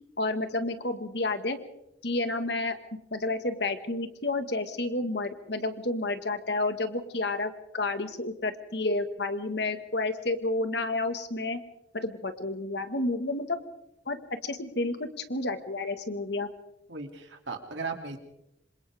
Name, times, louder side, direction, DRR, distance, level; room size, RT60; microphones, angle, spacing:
voice 1, 0.2-1.6 2.0-2.8 3.1-11.6 11.9-13.6 14.0-14.2 14.4-16.5, left 2 dB, 70° left, 8 dB, 1.8 m, -30 dB
voice 2, 16.9-18.2, right 4 dB, 90° right, 4 dB, 3.0 m, -36 dB
27.0 x 26.5 x 3.6 m, 0.85 s
head